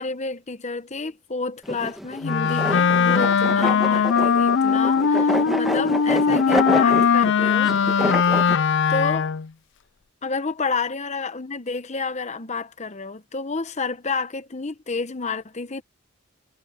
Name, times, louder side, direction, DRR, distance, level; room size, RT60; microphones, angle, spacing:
voice 1, 0.0-7.7 8.9-9.3 10.2-15.8, left 4 dB, 30° left, 1.0 m, -30 dB
sound 1, 1.6-8.5, equal, ahead, 1.3 m, -28 dB
Wind instrument woodwind instrument, 2.2-9.5, left 6 dB, 55° left, 0.4 m, -20 dB
head